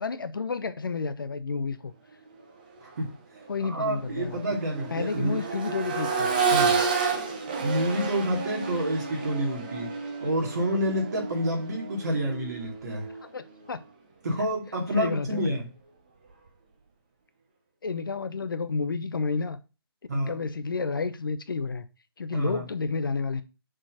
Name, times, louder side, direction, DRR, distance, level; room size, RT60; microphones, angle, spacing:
voice 1, 0.0-1.9 3.5-4.4 4.9-6.3 13.2-13.8 14.9-15.6 17.8-19.6 20.1-21.9 22.2-23.4, left 4 dB, 55° left, 0.8 m, -30 dB
Accelerating revving vroom, 2.8-2.9 3.4-13.3 15.0-15.1, right 5 dB, 20° right, 0.8 m, -30 dB
voice 2, 3.6-5.4 6.4-6.8 7.6-9.9 10.2-13.1 14.2-15.7 20.1-20.3 22.3-22.6, right 1 dB, 40° right, 2.5 m, -28 dB
6.5 x 3.9 x 6.3 m
hypercardioid pair, 170°, 13 cm